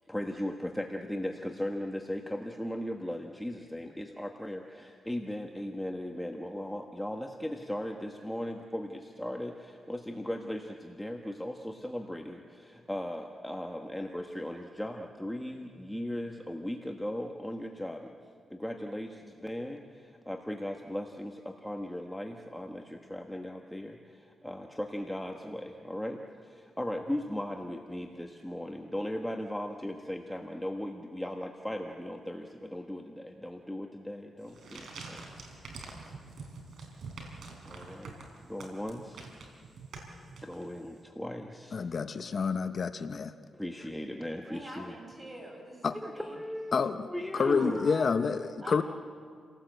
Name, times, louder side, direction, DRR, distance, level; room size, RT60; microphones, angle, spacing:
voice 1, 0.1-18.1 18.5-35.3 37.6-38.2 38.4-39.2 40.4-41.8 43.5-45.0 45.9-47.8, left 1 dB, 5° left, 2 dB, 1.4 m, -37 dB
sound 1, 34.4-40.9, right 3 dB, 75° right, 4.6 m, -46 dB
voice 2, 41.7-43.3 45.8-46.0 46.7-47.1 47.3-48.8, left 5 dB, 50° left, 9 dB, 0.8 m, -28 dB
voice 3, 44.5-46.4 47.3-48.1 48.6-48.8, equal, 25° right, 0 dB, 7.6 m, -45 dB
29.5 x 18.0 x 8.0 m, 2.1 s
cardioid pair, 110°, 0 cm